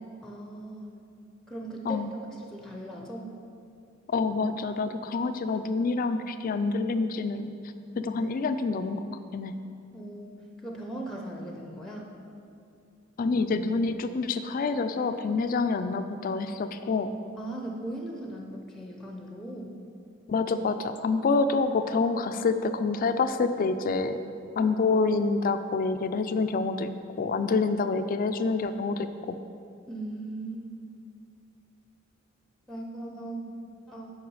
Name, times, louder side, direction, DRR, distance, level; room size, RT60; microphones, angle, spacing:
voice 1, 0.2-1.0 1.5-3.4 9.9-10.3 10.6-12.1 17.4-19.8 29.9-30.7 32.7-33.5 33.9-34.1, right 1 dB, ahead, 0 dB, 0.6 m, -38 dB
voice 2, 4.1-7.5 8.0-9.0 9.3-9.5 13.2-17.1 20.3-24.2 24.6-26.9 27.2-29.4, left 4 dB, 45° left, 10 dB, 0.3 m, -27 dB
8.0 x 5.5 x 4.7 m, 2.5 s
head